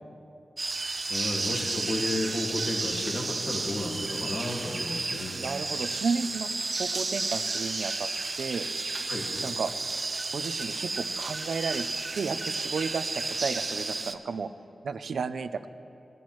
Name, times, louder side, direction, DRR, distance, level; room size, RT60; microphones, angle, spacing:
sound 1, 0.6-14.1, right 3 dB, 50° right, 0.8 m, -32 dB
voice 1, 1.1-5.4 9.1-9.3, left 1 dB, 70° left, -2 dB, 2.0 m, -33 dB
voice 2, 5.3-6.5 6.8-8.1 8.4-8.7 9.4-9.7 10.3-11.9 12.1-14.5 14.8-15.7, right 5 dB, 80° right, 11 dB, 0.5 m, -32 dB
20.0 x 11.5 x 3.1 m, 2.7 s
cardioid pair, 50°, 0 cm